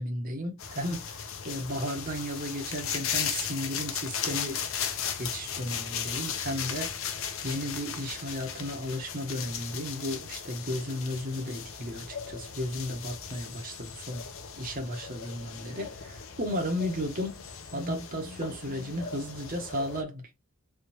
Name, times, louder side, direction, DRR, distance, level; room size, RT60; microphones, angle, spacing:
voice 1, 0.0-4.6 5.1-7.0 7.4-14.2 14.6-17.4 17.7-20.3, equal, 40° right, 1.2 m, -34 dB
sound 1, 0.6-20.0, left 7 dB, 65° left, 0.8 m, -37 dB
3.7 x 3.4 x 3.0 m
head